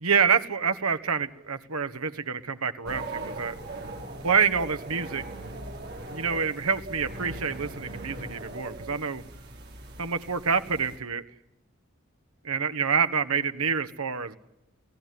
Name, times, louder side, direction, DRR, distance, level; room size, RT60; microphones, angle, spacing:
voice 1, 0.0-3.5 4.2-5.3 6.1-9.2 10.0-11.2 12.4-14.4, right 6 dB, 85° right, 9 dB, 1.5 m, -27 dB
sound 1, 2.8-11.0, right 2 dB, 45° right, 3.9 m, -40 dB
29.5 x 17.0 x 9.6 m, 0.88 s
head